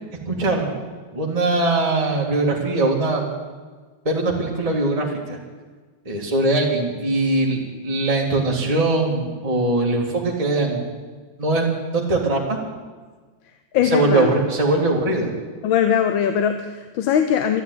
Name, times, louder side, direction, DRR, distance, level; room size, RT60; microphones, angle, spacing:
voice 1, 0.3-0.7 1.1-3.3 4.1-5.4 6.1-10.8 11.4-11.7 11.9-12.4 13.9-15.3, right 2 dB, 20° right, -1 dB, 2.0 m, -21 dB
voice 2, 13.7-14.4 15.6-17.6, left 8 dB, 85° left, 8 dB, 1.6 m, -20 dB
13.0 x 11.5 x 9.5 m, 1.4 s
omnidirectional pair, 2.1 m